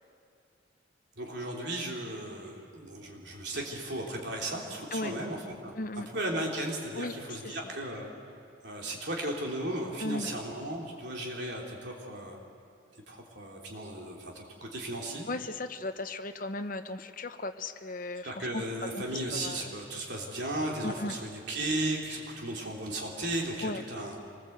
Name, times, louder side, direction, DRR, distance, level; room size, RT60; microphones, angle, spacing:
voice 1, 1.2-5.7 6.1-8.1 8.6-12.4 13.1-15.3 18.2-24.2, right 1 dB, 60° right, -1 dB, 3.3 m, -35 dB
voice 2, 5.8-6.1 7.0-7.1 10.0-10.3 15.3-18.6 18.9-19.6 20.8-21.2 23.6-23.8, left 2 dB, 45° left, 8 dB, 0.9 m, -36 dB
25.5 x 20.0 x 8.0 m, 2.5 s
head